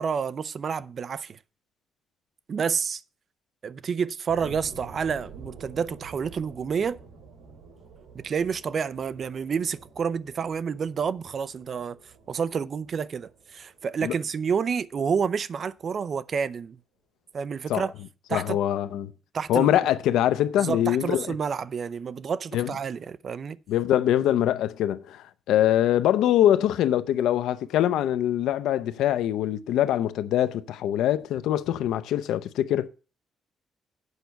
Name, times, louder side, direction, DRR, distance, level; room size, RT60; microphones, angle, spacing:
voice 1, 0.0-1.4 2.5-3.0 3.6-7.0 8.1-12.0 12.3-16.8 17.3-17.9 18.3-18.6 19.3-19.7 20.6-23.6, right 6 dB, 45° right, 0.5 m, -29 dB
sound 1, 4.3-15.3 15.8-15.9, right 5 dB, 80° right, 3.0 m, -48 dB
voice 2, 18.3-19.1 19.5-21.3 22.5-22.7 23.7-32.9, left 11 dB, 85° left, 0.6 m, -23 dB
8.2 x 5.8 x 6.8 m
cardioid pair, 125°, 0 cm